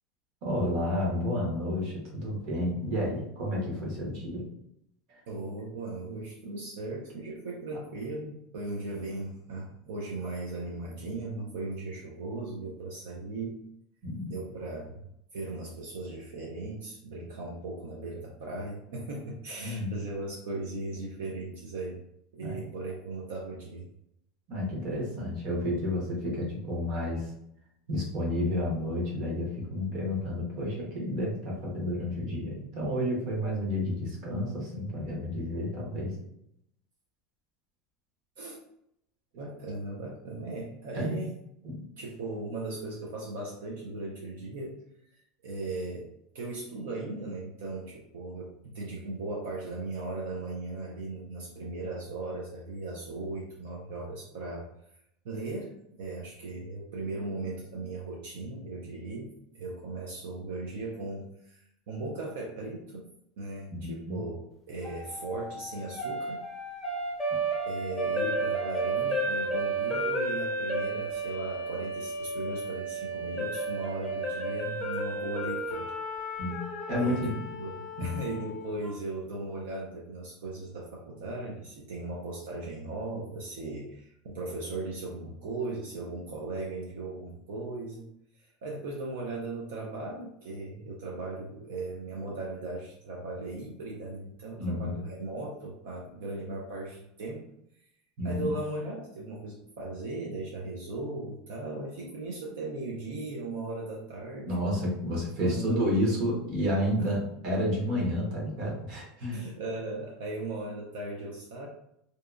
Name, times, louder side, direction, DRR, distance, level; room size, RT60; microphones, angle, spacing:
voice 1, 0.4-4.4 5.1-5.2 14.0-14.3 19.6-19.9 22.4-22.6 24.5-27.3 27.9-36.2 40.9-41.2 41.6-41.8 63.7-64.2 76.4-76.6 76.9-77.4 78.0-78.2 94.6-94.9 98.2-98.5 104.4-109.4, left 1 dB, 50° right, -2 dB, 1.0 m, -30 dB
voice 2, 5.3-13.6 14.3-15.0 15.3-22.0 22.3-23.9 38.4-38.6 39.3-41.3 41.9-44.8 45.1-54.7 55.2-63.1 63.4-66.5 67.7-75.9 76.9-88.1 88.3-97.5 98.2-104.5 105.4-105.8 107.0-107.1 109.3-111.7, right 2 dB, 85° right, -2 dB, 0.5 m, -37 dB
sound 1, 64.8-78.9, right 2 dB, 5° left, 0.5 m, -33 dB
2.7 x 2.2 x 2.4 m, 0.76 s
supercardioid pair, 150°, 0 cm